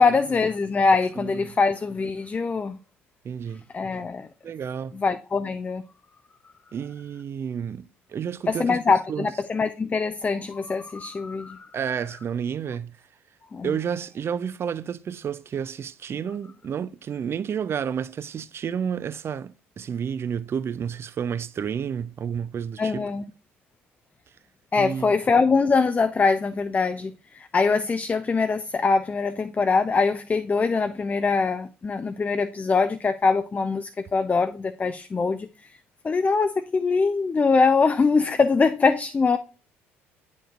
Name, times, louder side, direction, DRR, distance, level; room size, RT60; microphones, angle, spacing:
voice 1, 0.0-2.8 3.7-4.3 4.9-5.8 8.5-11.6 13.5-13.7 22.8-23.2 24.7-27.1 27.4-35.5 36.0-39.4, left 4 dB, 25° left, 0.4 m, -23 dB
voice 2, 1.2-1.5 3.2-3.6 4.4-5.0 6.7-9.3 11.7-13.0 13.6-23.1 24.8-25.1, right 7 dB, 40° right, 0.4 m, -31 dB
8.7 x 5.2 x 2.5 m
hypercardioid pair, 55°, 7 cm